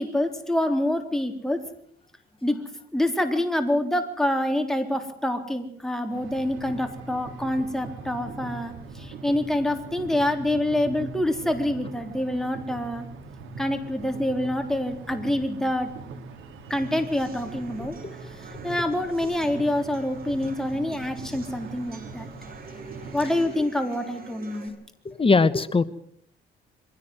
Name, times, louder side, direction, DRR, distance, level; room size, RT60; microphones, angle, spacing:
voice 1, 0.0-1.6 2.4-2.6 2.9-13.1 13.6-15.9 16.7-17.9 18.3-22.3 23.1-24.7, left 1 dB, ahead, 5 dB, 3.6 m, -26 dB
sound 1, 6.1-23.5, right 3 dB, 85° right, 3.7 m, -41 dB
sound 2, 16.7-24.7, right 4 dB, 50° right, 5.8 m, -45 dB
voice 2, 25.0-25.8, left 4 dB, 25° left, 15 dB, 1.1 m, -21 dB
23.5 x 16.5 x 7.9 m, 0.65 s
cardioid pair, 90°, 20 cm